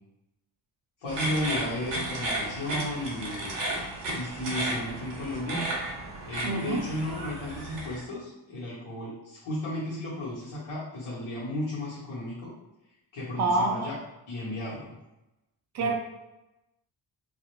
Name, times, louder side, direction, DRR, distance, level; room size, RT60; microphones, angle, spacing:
voice 1, 1.0-3.6 4.1-5.6 6.2-12.5 13.1-14.0 14.3-14.9 15.8-15.9, left 1 dB, 85° left, -10 dB, 1.0 m, -34 dB
sound 1, 1.1-8.0, right 1 dB, 65° right, 0.8 m, -33 dB
voice 2, 6.4-6.8 13.4-13.9 15.7-15.9, right 3 dB, 40° right, 2 dB, 0.4 m, -26 dB
2.4 x 2.0 x 2.9 m, 0.95 s
wide cardioid pair, 145°, 45 cm